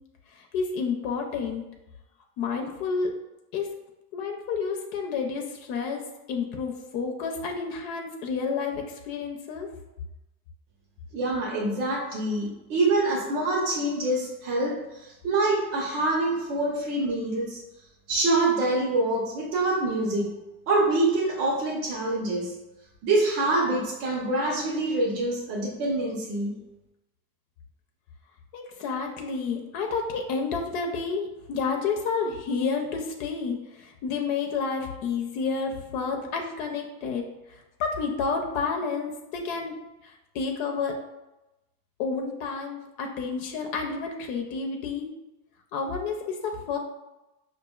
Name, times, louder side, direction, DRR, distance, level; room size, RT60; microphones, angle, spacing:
voice 1, 0.3-1.6 2.4-3.1 3.5-3.7 4.1-6.0 6.3-9.7 28.5-39.7 40.0-41.0 42.0-45.1 45.7-46.8, left 5 dB, 75° left, 2 dB, 0.7 m, -30 dB
voice 2, 11.1-17.6 18.1-20.3 20.7-22.5 23.0-26.6, right 2 dB, 80° right, -4 dB, 1.0 m, -25 dB
4.9 x 2.5 x 2.3 m, 0.99 s
supercardioid pair, 95°, 45 cm